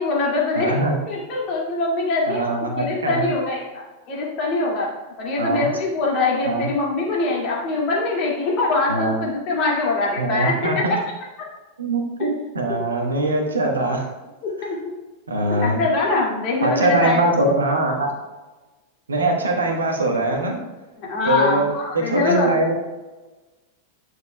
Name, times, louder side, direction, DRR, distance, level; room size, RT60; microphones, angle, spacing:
voice 1, 0.0-0.7 1.1-2.4 2.8-4.9 5.2-11.0 12.7-12.8 14.6-14.8 15.6-17.2 21.0-22.6, left 3 dB, 40° left, -3 dB, 2.2 m, -23 dB
voice 2, 0.5-1.0 2.3-3.3 5.4-5.7 6.4-6.7 8.9-9.2 10.2-10.8 11.8-14.1 15.3-15.8 16.6-18.1 19.1-20.6 21.2-21.7 21.9-22.7, right 2 dB, 75° right, 1 dB, 1.3 m, -22 dB
9.4 x 6.5 x 2.3 m, 1.2 s
figure-of-eight pair, 90°, 0 cm